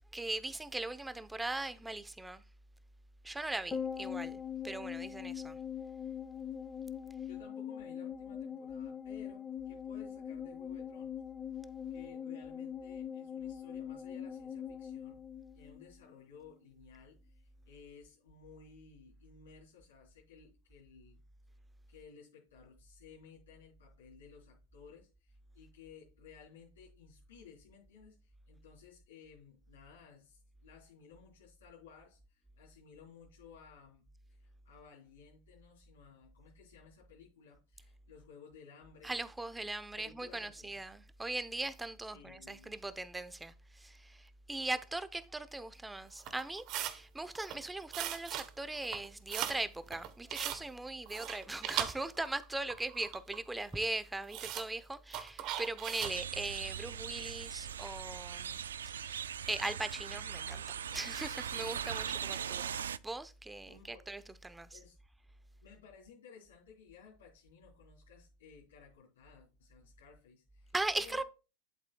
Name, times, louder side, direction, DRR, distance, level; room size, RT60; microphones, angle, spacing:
voice 1, 0.1-2.4 3.2-5.6 39.0-64.8 70.7-71.2, right 2 dB, 10° right, 0.8 m, -40 dB
sound 1, 3.7-16.2 16.5-16.6, left 8 dB, 20° left, 1.9 m, -42 dB
voice 2, 7.2-11.2 11.9-15.2 15.5-21.2 21.9-34.0 34.3-39.2 39.9-40.8 42.1-42.8 61.8-62.0 63.7-64.0 64.7-65.0 65.6-71.2, left 6 dB, 85° left, 3.9 m, -57 dB
sound 2, 46.2-47.0 47.4-47.6 47.9-48.5 48.8-49.6 49.9-50.6 51.1-52.4 52.7-53.4 53.7-53.8 54.3-54.7 55.1-56.2, right 11 dB, 45° right, 1.1 m, -39 dB
sound 3, 56.0-63.0, right 8 dB, 90° right, 0.4 m, -40 dB
11.0 x 8.1 x 2.3 m
hypercardioid pair, 110°, 0 cm